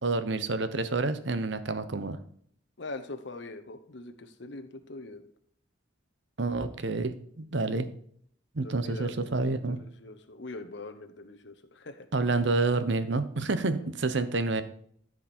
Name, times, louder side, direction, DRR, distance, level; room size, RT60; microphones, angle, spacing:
voice 1, 0.0-2.2 6.4-7.9 8.5-9.8 12.1-14.6, right 3 dB, 65° right, 11 dB, 0.8 m, -28 dB
voice 2, 2.8-5.2 8.6-9.4 9.6-12.1 13.8-13.9, left 2 dB, 65° left, 6 dB, 1.0 m, -43 dB
13.5 x 5.0 x 4.3 m, 0.64 s
head